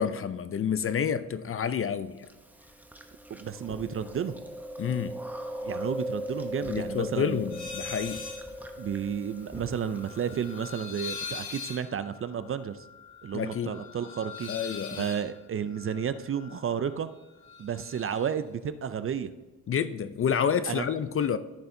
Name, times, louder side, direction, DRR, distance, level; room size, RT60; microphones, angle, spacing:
voice 1, 0.0-2.3 4.8-5.2 6.6-8.3 13.3-13.8 14.5-15.1 19.7-21.4, left 7 dB, 40° left, 0.4 m, -29 dB
Chewing mastication, 2.2-11.2, equal, 5° right, 0.8 m, -39 dB
voice 2, 3.3-4.4 5.6-7.4 8.8-12.8 13.2-14.5 14.9-17.1 17.6-19.3 20.7-20.9, right 8 dB, 35° right, 0.4 m, -32 dB
sound 1, 7.5-8.5 8.8-17.0 17.2-18.3, left 5 dB, 80° left, 1.3 m, -42 dB
14.0 x 6.9 x 2.7 m
cardioid pair, 95°, 37 cm